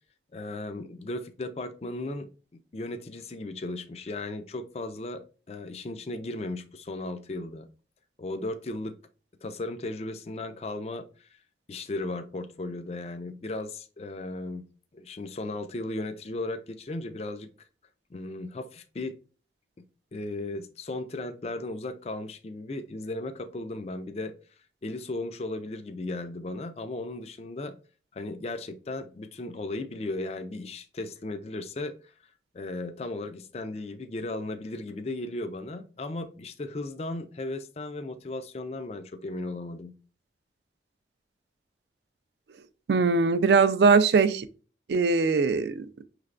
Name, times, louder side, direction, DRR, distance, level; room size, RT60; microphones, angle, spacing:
voice 1, 0.3-2.3 2.7-5.2 5.5-7.7 8.2-8.9 9.4-11.3 11.7-14.6 14.9-17.5 18.1-19.1 20.1-24.3 24.8-27.7 28.1-32.1 32.5-39.9, left 2 dB, 35° left, 0.4 m, -36 dB
voice 2, 42.9-44.5 44.9-45.9, right 4 dB, 65° right, 0.4 m, -21 dB
5.7 x 3.2 x 2.4 m
head